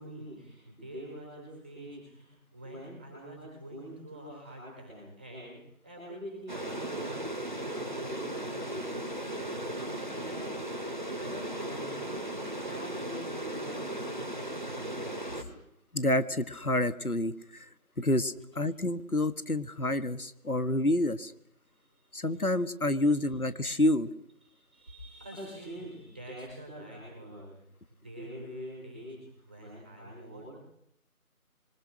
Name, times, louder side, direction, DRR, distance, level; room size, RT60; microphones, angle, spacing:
voice 1, 0.0-2.3 2.5-5.5 5.8-7.2 7.6-10.7 11.1-12.2 12.6-15.0 21.7-22.1 24.4-27.5 27.9-29.2 29.5-30.5, right 1 dB, 5° right, -3 dB, 5.5 m, -45 dB
sound 1, 6.5-15.4, right 1 dB, 30° right, 2.6 m, -36 dB
voice 2, 15.9-17.7 18.0-21.3 22.1-24.1, left 1 dB, 80° left, 12 dB, 1.9 m, -28 dB
28.0 x 24.5 x 6.3 m, 0.75 s
figure-of-eight pair, 175°, 43 cm